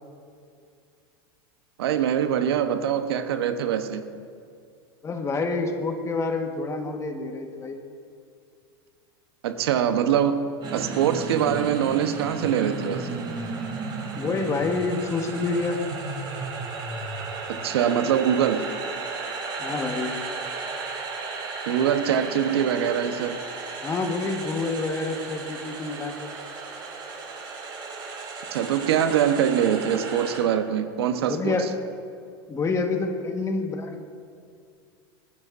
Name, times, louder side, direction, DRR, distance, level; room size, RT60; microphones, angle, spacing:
voice 1, 1.8-4.0 9.4-13.1 17.5-18.7 21.7-23.4 28.5-31.6, right 9 dB, 80° right, 9 dB, 0.9 m, -23 dB
voice 2, 5.0-7.8 14.1-15.8 19.6-20.2 23.8-26.3 31.3-31.7 32.5-34.0, left 3 dB, 20° left, 5 dB, 1.3 m, -28 dB
sound 1, 10.6-30.4, right 4 dB, 35° right, 3.3 m, -34 dB
27.0 x 9.7 x 2.6 m, 2.3 s
hypercardioid pair, 115°, 13 cm